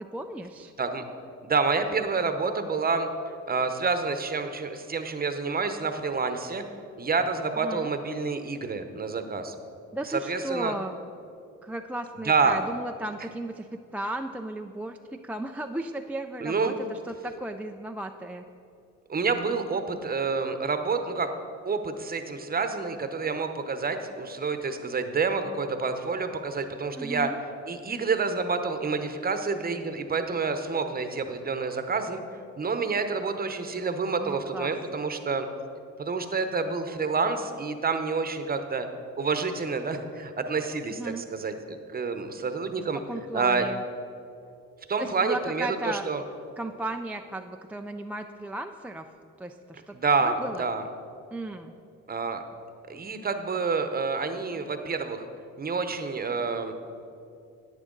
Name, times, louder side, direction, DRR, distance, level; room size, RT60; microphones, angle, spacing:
voice 1, 0.1-0.7 7.6-7.9 9.9-11.0 11.6-13.7 13.9-15.0 15.2-18.4 27.0-27.4 34.2-34.7 41.0-41.2 43.1-43.8 45.0-46.1 46.6-49.1 49.4-49.9 50.2-50.7 51.3-51.7, right 1 dB, 5° right, 4 dB, 0.3 m, -35 dB
voice 2, 1.4-3.1 3.5-6.6 7.0-9.5 10.0-10.7 12.2-12.6 16.4-16.7 19.1-21.3 21.6-27.3 27.7-32.2 32.6-35.5 36.0-38.9 39.2-43.0 43.3-43.7 44.9-46.2 49.9-50.8 52.1-52.4 52.9-55.2 55.6-56.7, right 4 dB, 30° right, 8 dB, 0.9 m, -28 dB
11.0 x 9.0 x 3.9 m, 2.6 s
cardioid pair, 90°, 30 cm